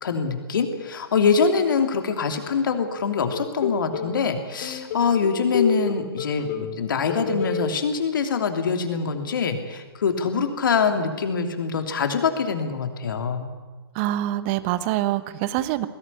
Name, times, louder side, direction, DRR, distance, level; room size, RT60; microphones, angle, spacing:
voice 1, 0.0-6.5 6.8-13.5, left 5 dB, 55° left, 6 dB, 3.0 m, -24 dB
sound 1, 3.3-4.2 4.6-6.8 7.1-7.7, left 5 dB, 40° left, 2.8 m, -28 dB
voice 2, 13.9-15.9, right 14 dB, 30° right, 14 dB, 1.1 m, -25 dB
21.0 x 17.0 x 9.9 m, 1.3 s
figure-of-eight pair, 125°, 13 cm